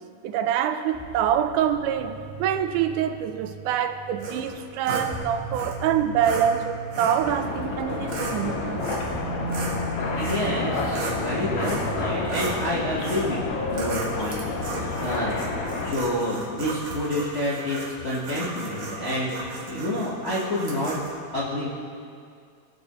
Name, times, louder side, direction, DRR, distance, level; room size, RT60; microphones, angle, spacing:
voice 1, 0.2-8.9, right 9 dB, 90° right, 2.1 m, -25 dB
sound 1, 0.9-12.5, right 2 dB, 10° right, 2.0 m, -38 dB
sound 2, 4.2-5.1 5.5-5.7 6.2-6.4 6.9-7.2 7.9-8.4 8.8-9.2 9.5-11.2 11.6-11.9 12.2-12.6 13.0-13.3 13.7-21.1, right 3 dB, 50° right, 1.5 m, -35 dB
sound 3, 7.2-15.9, left 3 dB, 75° left, 1.1 m, -30 dB
voice 2, 10.2-15.3 15.6-21.0 21.3-21.7, left 1 dB, 60° left, 0.7 m, -28 dB
19.5 x 6.6 x 3.1 m
omnidirectional pair, 3.5 m